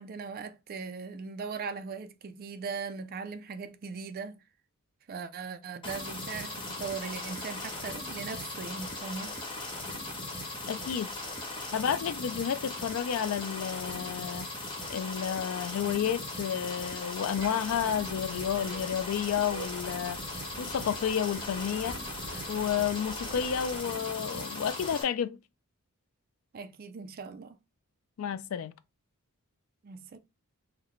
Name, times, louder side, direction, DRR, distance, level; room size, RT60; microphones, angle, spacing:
voice 1, 0.0-4.4 5.1-9.4 26.5-27.6 29.8-30.2, right 5 dB, 40° right, 0.3 m, -39 dB
sound 1, 5.8-25.0, left 2 dB, 20° left, 0.9 m, -38 dB
voice 2, 10.7-11.1 11.7-14.5 14.9-20.2 20.6-22.0 22.5-25.4 28.2-28.7, left 8 dB, 65° left, 0.3 m, -31 dB
sound 2, 17.3-23.8, right 4 dB, 85° right, 0.6 m, -46 dB
3.9 x 2.1 x 3.0 m
head